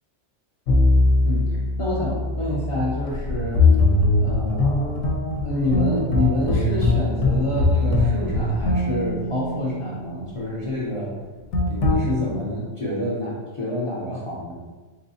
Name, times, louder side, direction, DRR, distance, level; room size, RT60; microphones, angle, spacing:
sound 1, 0.7-10.1 11.5-12.0, left 2 dB, 75° left, 0.9 m, -21 dB
voice 1, 1.8-3.6 4.2-5.1 5.4-11.1 11.7-14.5, left 1 dB, 45° left, -5 dB, 0.4 m, -27 dB
3.4 x 3.1 x 2.7 m, 1.3 s
omnidirectional pair, 1.3 m